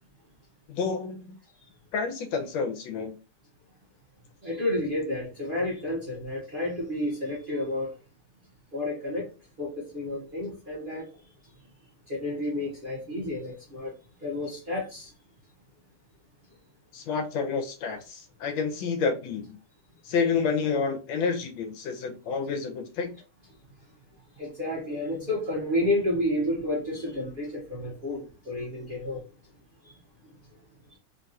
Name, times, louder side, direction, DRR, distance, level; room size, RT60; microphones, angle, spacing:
voice 1, 0.7-1.3 1.9-3.2 16.9-19.6 20.0-23.1, left 5 dB, 85° left, 5 dB, 1.4 m, -29 dB
voice 2, 4.4-7.9 8.7-9.3 9.6-11.1 12.1-13.9 14.2-15.1 24.4-29.2 29.8-30.0, left 1 dB, 40° right, -6 dB, 0.8 m, -30 dB
3.6 x 2.3 x 2.7 m, 0.33 s
omnidirectional pair, 2.1 m